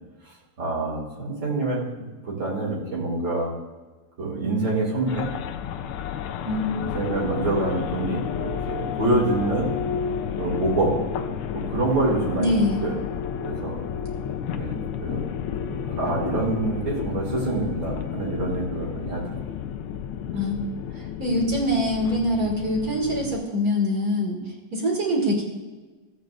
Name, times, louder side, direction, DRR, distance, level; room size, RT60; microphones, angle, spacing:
voice 1, 0.6-3.5 4.2-5.3 6.7-9.7 10.4-11.0 11.5-12.9 13.4-13.8 14.5-15.3 15.7-19.3, right 2 dB, 65° right, -4 dB, 3.1 m, -26 dB
sound 1, 5.1-23.4, left 8 dB, 90° left, 1.5 m, -31 dB
voice 2, 12.3-12.8 20.3-20.6 20.9-24.4 24.7-25.4, left 1 dB, 45° right, -1 dB, 2.4 m, -24 dB
15.5 x 8.5 x 2.5 m, 1.3 s
omnidirectional pair, 2.3 m